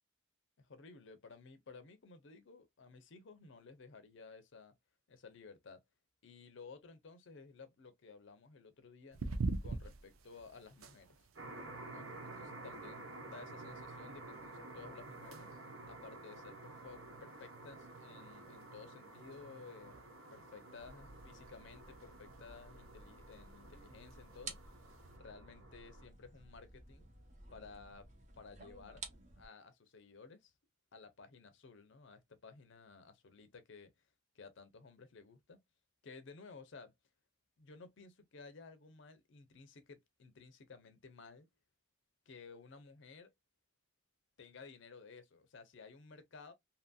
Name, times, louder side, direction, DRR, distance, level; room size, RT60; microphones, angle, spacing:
voice 1, 0.6-4.7 5.1-5.8 6.2-9.2 9.6-11.3 11.9-15.5 15.9-20.0 20.3-24.6 25.1-27.1 27.5-28.1 28.4-29.0 29.4-30.5 30.9-34.1 34.3-35.6 36.0-36.9 37.6-41.5 42.3-43.3 44.4-46.5, left 4 dB, 60° left, 0.6 m, -55 dB
sound 1, 9.1-25.2, right 3 dB, 90° right, 0.5 m, -48 dB
sound 2, 11.4-26.1, right 2 dB, 70° right, 1.0 m, -52 dB
sound 3, 20.8-29.5, right 3 dB, 35° right, 0.7 m, -54 dB
2.8 x 2.7 x 2.2 m
head